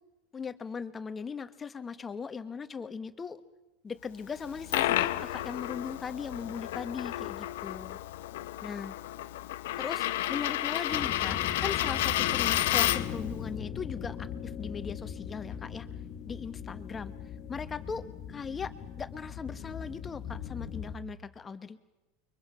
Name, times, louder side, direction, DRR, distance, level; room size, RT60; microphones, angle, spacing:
voice 1, 0.3-3.4 3.8-8.0 8.6-8.9 9.8-15.9 16.3-17.1 17.5-18.7 19.0-21.8, left 5 dB, 20° left, 11 dB, 1.3 m, -39 dB
Coin (dropping), 4.4-13.2, left 14 dB, 85° left, 0.9 m, -31 dB
sound 1, 10.9-21.0, left 8 dB, 50° left, 1.4 m, -39 dB
29.5 x 23.5 x 5.7 m, 1.0 s
supercardioid pair, 115°, 0 cm